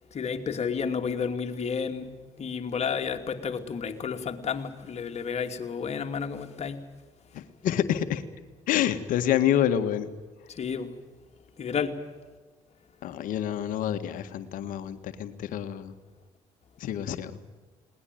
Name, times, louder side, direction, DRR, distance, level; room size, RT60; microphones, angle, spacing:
voice 1, 0.1-2.1 2.4-6.8 10.5-10.9 11.6-12.0, left 6 dB, 50° left, 5 dB, 2.8 m, -31 dB
voice 2, 7.3-8.2 8.7-10.1 13.0-15.9 16.8-17.3, left 10 dB, 70° left, 10 dB, 1.8 m, -27 dB
21.0 x 19.0 x 9.3 m, 1.3 s
hypercardioid pair, 60°, 14 cm